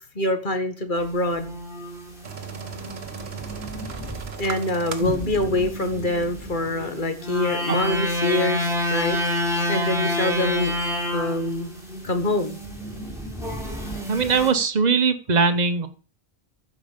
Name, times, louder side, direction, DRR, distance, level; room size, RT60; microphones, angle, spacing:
voice 1, 0.1-1.5 4.4-10.7 11.1-11.7 12.0-12.6, left 2 dB, 45° left, 8 dB, 1.6 m, -25 dB
sound 1, 0.9-4.4 4.9-14.5, left 1 dB, 5° right, 3.7 m, -29 dB
sound 2, 2.2-5.5 5.8-5.9 6.2-6.3, right 6 dB, 60° right, 1.3 m, -37 dB
voice 2, 14.1-15.9, right 5 dB, 40° right, 10 dB, 1.1 m, -21 dB
14.0 x 5.4 x 5.1 m, 0.38 s
omnidirectional pair, 1.2 m